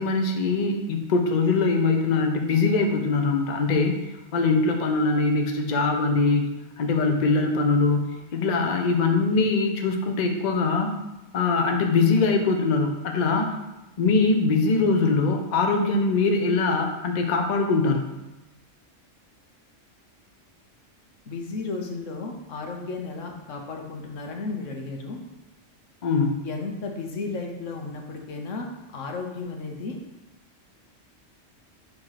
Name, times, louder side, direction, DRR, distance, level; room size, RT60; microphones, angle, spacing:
voice 1, 0.0-4.0 4.3-10.9 11.3-13.5 14.0-18.1 26.0-26.5, left 3 dB, 45° left, 3 dB, 0.7 m, -22 dB
voice 2, 21.3-25.2 26.4-28.7 28.9-30.0, left 3 dB, 80° left, 2 dB, 1.3 m, -34 dB
7.7 x 3.0 x 5.7 m, 1.0 s
omnidirectional pair, 1.3 m